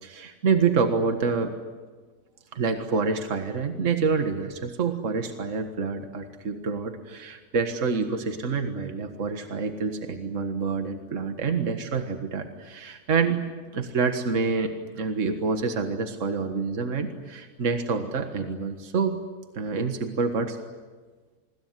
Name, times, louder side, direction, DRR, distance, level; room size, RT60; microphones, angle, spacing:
voice 1, 0.0-1.5 2.5-13.4 13.7-19.2 19.5-20.6, right 5 dB, 55° right, 7 dB, 2.0 m, -27 dB
28.0 x 21.0 x 9.7 m, 1.3 s
omnidirectional pair, 1.6 m